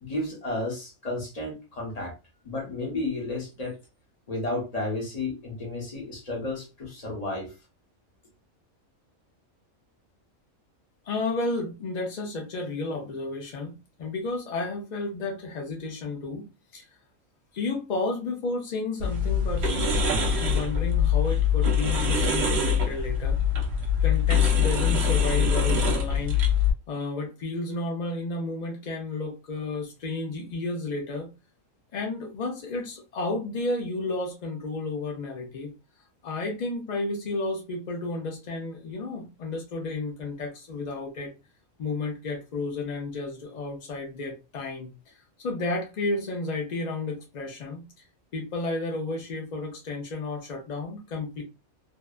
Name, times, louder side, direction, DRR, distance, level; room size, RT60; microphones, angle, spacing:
voice 1, 0.0-2.1 2.4-3.8 4.3-7.5, left 2 dB, 35° left, 0.9 m, -32 dB
voice 2, 11.0-16.5 16.7-16.9 17.5-20.0 20.4-23.4 24.0-26.4 26.9-31.3 31.9-35.7 36.2-41.3 41.8-47.8 48.3-51.4, left 2 dB, 65° left, 0.4 m, -32 dB
sound 1, 19.0-26.7, left 6 dB, 60° right, 0.9 m, -23 dB
2.6 x 2.3 x 2.3 m
omnidirectional pair, 1.4 m